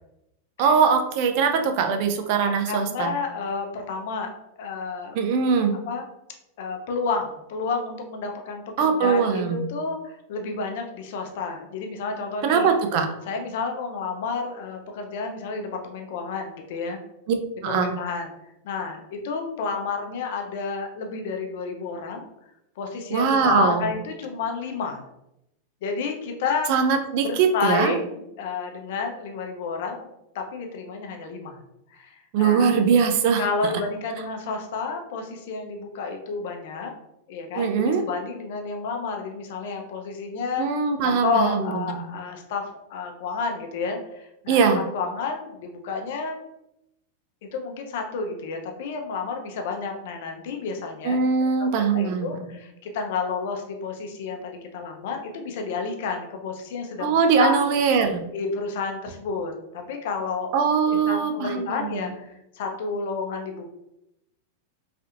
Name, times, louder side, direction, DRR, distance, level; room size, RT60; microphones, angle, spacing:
voice 1, 0.6-3.1 5.1-5.8 8.8-9.7 12.4-13.1 17.6-17.9 23.1-23.8 26.7-28.0 32.3-33.5 37.6-38.0 40.6-42.1 44.5-44.9 51.0-52.4 57.0-58.2 60.5-62.0, right 6 dB, 55° right, 6 dB, 0.5 m, -21 dB
voice 2, 2.4-4.3 4.6-5.2 5.9-6.0 6.6-12.7 13.3-17.0 17.6-18.3 18.6-22.3 22.8-25.0 25.8-26.7 27.2-31.6 31.9-32.8 33.4-36.9 37.3-40.7 41.0-44.6 44.9-46.4 47.4-51.2 51.6-51.7 51.9-57.6 58.3-60.5 60.9-63.7, left 4 dB, 65° left, 4 dB, 0.6 m, -30 dB
3.3 x 2.7 x 2.5 m, 0.84 s
hypercardioid pair, 115°, 0 cm